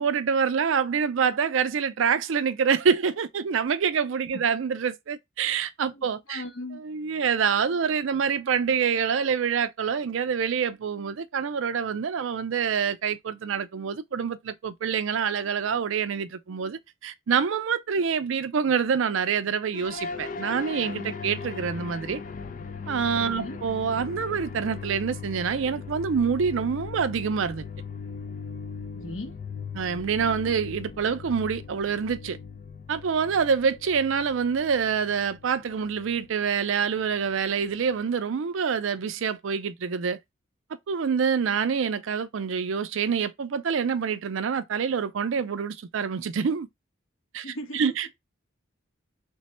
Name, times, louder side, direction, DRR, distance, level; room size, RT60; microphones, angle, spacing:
voice 1, 0.0-6.4 6.7-22.2 22.9-27.7 29.7-32.4 32.9-40.2 40.9-46.7 47.3-48.1, right 6 dB, 70° right, 0.4 m, -26 dB
voice 2, 5.9-6.8 23.2-23.6 28.9-29.4 47.4-47.8, left 1 dB, 80° left, 1.0 m, -38 dB
sound 1, 19.7-38.0, left 5 dB, 40° left, 0.4 m, -39 dB
3.3 x 2.2 x 4.1 m
head